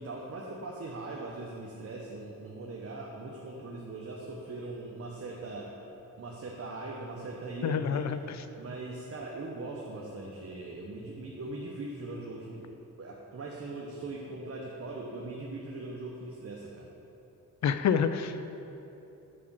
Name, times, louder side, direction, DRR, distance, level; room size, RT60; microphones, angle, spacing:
voice 1, 0.0-5.7 6.2-8.1 8.6-12.7 13.0-16.9, right 2 dB, 40° right, -2 dB, 0.9 m, -40 dB
voice 2, 7.6-8.4 17.6-18.5, left 7 dB, 50° left, 10 dB, 0.4 m, -28 dB
5.8 x 4.9 x 5.5 m, 2.9 s
cardioid pair, 60°, 36 cm